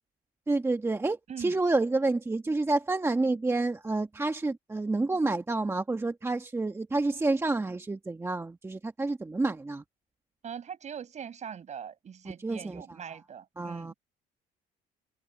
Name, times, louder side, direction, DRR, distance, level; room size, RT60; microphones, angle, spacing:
voice 1, 0.5-9.8 12.4-13.0 13.6-13.9, right 2 dB, 15° right, 1.2 m, -29 dB
voice 2, 1.3-1.6 10.4-13.9, right 7 dB, 45° right, 5.5 m, -42 dB
cardioid pair, 110°, 17 cm